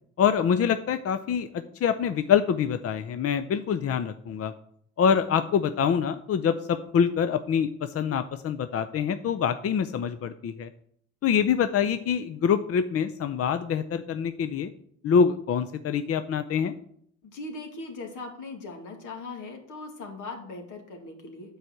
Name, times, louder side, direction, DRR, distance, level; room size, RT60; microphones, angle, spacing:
voice 1, 0.2-4.5 5.0-10.7 11.2-14.7 15.0-16.7, left 7 dB, 50° left, 11 dB, 0.6 m, -25 dB
voice 2, 17.2-21.6, left 3 dB, 80° left, 3 dB, 2.4 m, -39 dB
9.2 x 4.8 x 7.7 m, 0.67 s
cardioid pair, 90°, 30 cm